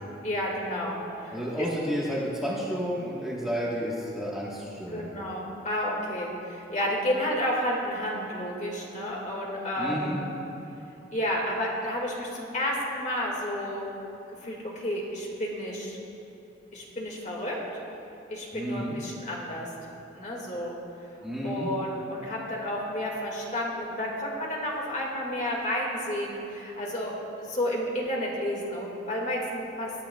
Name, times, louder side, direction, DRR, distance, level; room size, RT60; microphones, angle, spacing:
voice 1, 0.2-1.7 4.9-10.2 11.1-13.9 14.4-16.0 16.7-17.6 18.3-19.7 20.1-20.8 21.4-29.9, equal, 40° left, -2 dB, 1.9 m, -31 dB
voice 2, 1.3-5.1 9.8-10.2 18.5-18.9 21.2-21.7, equal, ahead, -6 dB, 1.3 m, -31 dB
21.5 x 10.0 x 2.3 m, 3.0 s
head